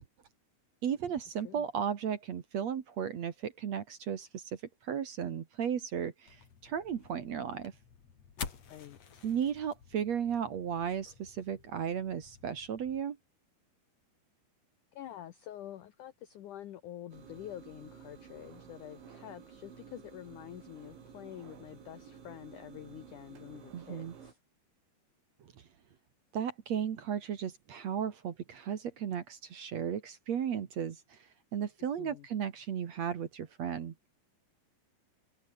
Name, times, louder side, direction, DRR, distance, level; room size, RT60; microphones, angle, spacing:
voice 1, 0.8-7.7 9.2-13.2 23.7-24.1 25.4-25.5 26.3-31.2 31.5-33.9, right 8 dB, 55° right, 2.0 m, -35 dB
sound 1, 6.3-13.0, left 7 dB, 40° left, 3.5 m, -49 dB
voice 2, 8.7-9.2 14.9-24.4 32.0-32.3, left 12 dB, 75° left, 1.9 m, -47 dB
sound 2, 17.1-24.3, right 7 dB, 85° right, 6.9 m, -53 dB
omnidirectional pair, 5.2 m